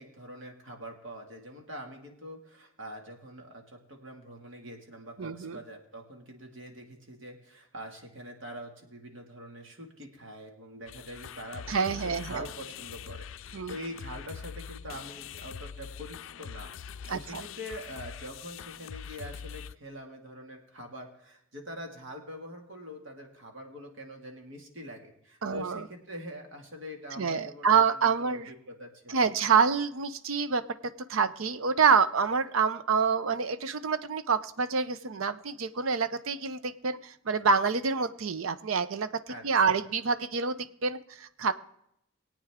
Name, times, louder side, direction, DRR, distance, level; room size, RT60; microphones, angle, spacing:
voice 1, 0.0-28.4 28.7-29.3 39.3-39.8, equal, 70° right, 2 dB, 2.2 m, -44 dB
voice 2, 5.2-5.6 11.7-12.5 13.5-13.7 17.1-17.4 25.4-25.8 27.2-28.5 29.1-30.6 31.1-41.5, right 5 dB, 90° right, 13 dB, 0.6 m, -27 dB
sound 1, 10.9-19.8, left 7 dB, 70° left, 0.4 m, -43 dB
21.5 x 8.7 x 3.6 m, 0.77 s
head